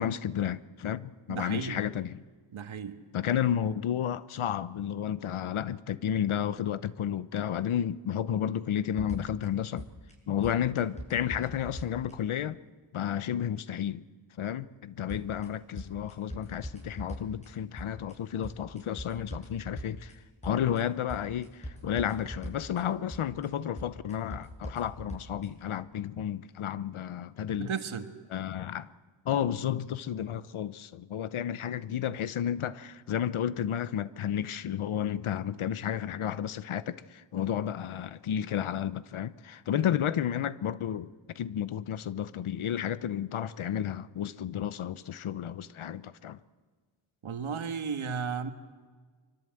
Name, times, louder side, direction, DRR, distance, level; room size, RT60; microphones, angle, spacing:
voice 1, 0.0-2.2 3.1-9.9 10.3-12.6 12.9-14.0 14.4-27.7 28.3-28.9 29.2-46.4, left 9 dB, 90° left, 0.9 m, -32 dB
voice 2, 1.3-1.8 2.5-3.0 27.6-28.1 47.2-48.5, right 6 dB, 80° right, 1.7 m, -34 dB
sound 1, 9.0-9.4 9.8-10.1 10.4-12.1 15.1-15.4 15.8-17.5 17.8-18.1 18.4-20.1 20.4-20.8 21.1-22.8 23.1-23.4 23.8-25.5, equal, 15° left, 6.7 m, -41 dB
25.0 x 24.5 x 7.8 m
wide cardioid pair, 110°, 48 cm